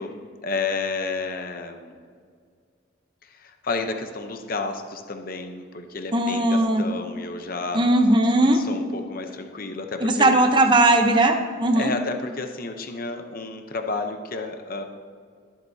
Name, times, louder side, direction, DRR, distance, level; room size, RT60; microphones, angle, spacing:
voice 1, 0.0-2.0 3.2-7.8 8.5-10.3 11.8-14.8, left 3 dB, 45° left, 5 dB, 0.8 m, -31 dB
voice 2, 6.1-6.8 7.7-8.6 10.0-11.9, right 1 dB, 25° right, 5 dB, 0.8 m, -18 dB
21.5 x 7.7 x 2.8 m, 2.1 s
head